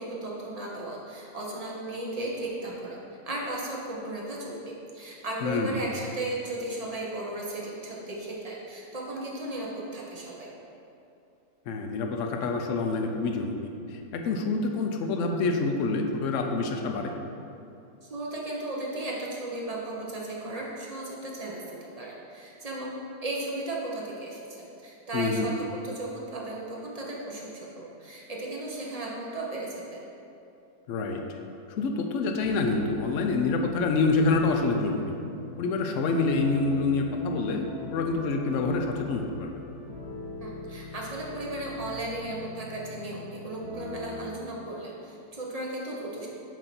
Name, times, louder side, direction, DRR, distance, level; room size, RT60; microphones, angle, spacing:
voice 1, 0.0-3.0 3.2-10.5 18.0-21.6 22.0-22.9 23.2-25.5 25.8-30.0 40.4-46.3, right 2 dB, 45° right, -3 dB, 0.4 m, -35 dB
voice 2, 5.4-5.8 11.7-17.1 25.1-25.5 30.9-31.2 31.7-35.1 35.6-39.5, left 3 dB, 70° left, 3 dB, 0.7 m, -27 dB
sound 1, 32.4-44.2, left 2 dB, 85° right, 2.3 m, -42 dB
7.7 x 2.7 x 5.9 m, 2.7 s
omnidirectional pair, 1.8 m